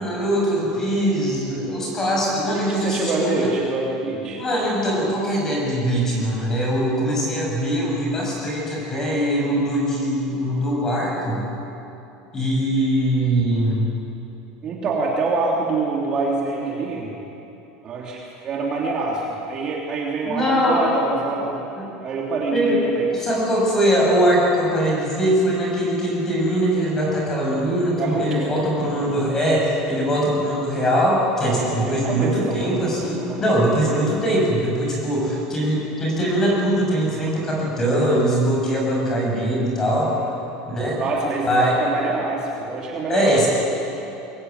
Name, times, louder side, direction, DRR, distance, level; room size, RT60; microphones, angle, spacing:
voice 1, 0.0-3.5 4.3-11.4 12.3-13.9 20.3-20.8 21.7-21.9 22.5-22.8 23.1-40.1 40.7-41.0 41.4-41.7 43.1-43.5, equal, 15° left, -3 dB, 7.5 m, -21 dB
voice 2, 2.5-4.4 14.6-17.1 17.8-21.7 22.0-23.1 28.0-28.5 31.5-32.6 33.2-33.4 40.1-40.3 41.0-43.4, right 3 dB, 30° right, -2 dB, 3.2 m, -26 dB
23.0 x 22.5 x 9.7 m, 2.9 s
cardioid pair, 170°, 3 cm